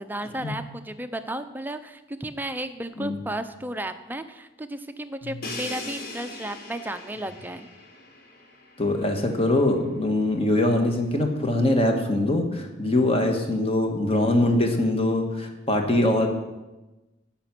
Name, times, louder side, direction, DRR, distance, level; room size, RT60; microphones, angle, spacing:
voice 1, 0.0-7.7, right 1 dB, 10° right, 9 dB, 0.5 m, -34 dB
Crash cymbal, 5.4-9.2, left 2 dB, 50° left, 1.4 m, -39 dB
voice 2, 8.8-16.3, left 1 dB, 30° left, 3 dB, 1.4 m, -23 dB
16.0 x 5.9 x 6.0 m, 1.1 s
head